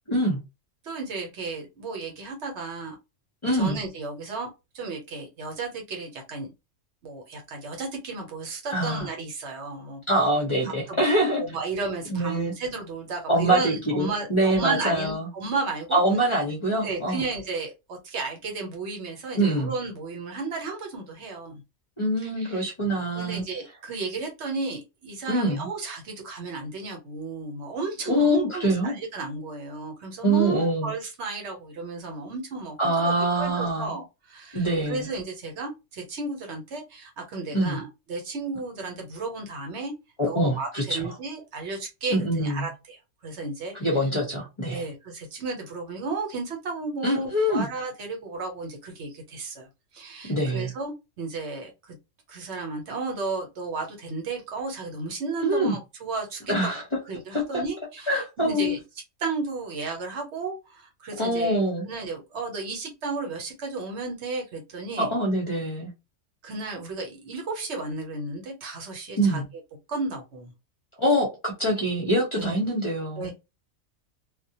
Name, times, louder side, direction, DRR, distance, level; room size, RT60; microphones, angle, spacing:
voice 1, 0.1-0.4 3.4-3.8 8.7-9.1 10.1-11.4 12.1-12.5 13.3-15.3 15.9-17.2 19.4-19.7 22.0-23.4 25.3-25.7 28.1-29.0 30.2-30.9 32.8-33.9 34.5-35.1 37.5-37.8 40.2-41.1 42.1-42.7 43.7-44.8 47.0-47.7 50.2-50.7 55.4-55.8 56.5-56.8 57.3-57.4 58.1-58.8 61.2-61.8 65.0-65.9 69.2-69.5 71.0-73.3, right 1 dB, 30° left, 0.7 m, -24 dB
voice 2, 0.8-3.0 3.5-4.5 4.7-6.5 7.0-10.0 10.6-11.0 11.3-16.0 16.3-16.4 16.8-21.6 22.4-22.7 23.2-39.9 40.3-43.0 43.2-43.7 44.7-49.7 49.9-52.0 52.3-56.5 57.1-58.8 59.2-61.6 61.8-65.1 66.4-69.4 69.9-70.5 72.3-72.5 73.2-73.3, right 3 dB, 70° right, 1.0 m, -33 dB
2.3 x 2.1 x 2.7 m
omnidirectional pair, 1.2 m